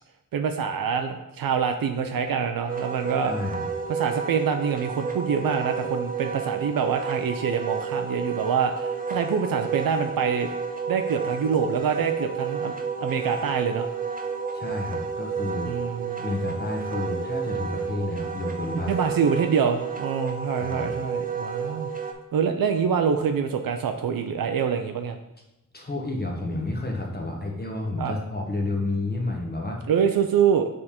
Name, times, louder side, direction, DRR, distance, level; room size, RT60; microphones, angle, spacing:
voice 1, 0.3-3.3 3.9-10.5 10.9-13.9 15.6-16.2 18.9-21.9 22.3-25.2 28.0-28.2 29.9-30.7, right 7 dB, 85° right, 6 dB, 0.5 m, -25 dB
Wind instrument woodwind instrument, 2.7-22.1, right 5 dB, 25° right, 0.6 m, -31 dB
voice 2, 3.2-3.7 14.5-15.7 16.2-18.9 20.6-21.0 25.7-29.8, left 2 dB, 30° left, 0 dB, 1.0 m, -30 dB
6.6 x 3.7 x 4.3 m, 0.92 s
wide cardioid pair, 110°, 34 cm